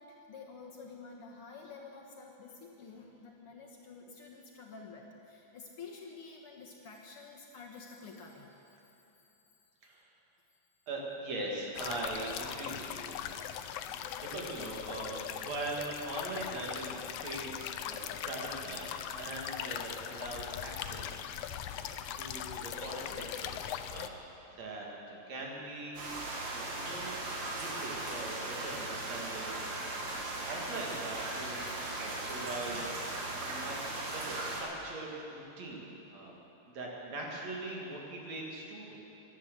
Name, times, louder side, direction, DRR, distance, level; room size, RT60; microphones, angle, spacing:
voice 1, 0.0-8.8 9.2-9.4 17.2-17.4 32.7-33.0, left 4 dB, 55° left, -1 dB, 2.0 m, -50 dB
voice 2, 10.9-13.4 13.8-24.1 24.6-26.2 26.5-29.7 30.0-32.8 33.4-36.4 36.7-39.0, right 2 dB, 65° right, -2 dB, 3.3 m, -42 dB
sound 1, 11.8-24.1, left 10 dB, 75° left, 1.5 m, -40 dB
sound 2, 26.0-34.6, right 2 dB, 85° right, 3.5 m, -38 dB
16.5 x 11.5 x 6.7 m, 3.0 s
omnidirectional pair, 3.3 m